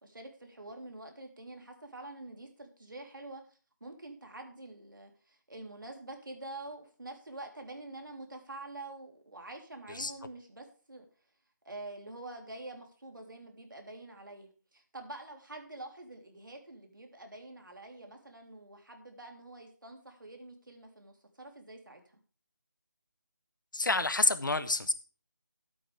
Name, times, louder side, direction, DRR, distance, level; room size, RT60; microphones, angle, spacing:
voice 1, 0.0-3.4 3.8-11.1 11.7-22.0, right 2 dB, 90° right, 3 dB, 3.6 m, -46 dB
voice 2, 23.7-24.9, left 2 dB, 80° left, 11 dB, 1.3 m, -28 dB
13.5 x 8.9 x 3.5 m, 0.38 s
figure-of-eight pair, 175°, 10 cm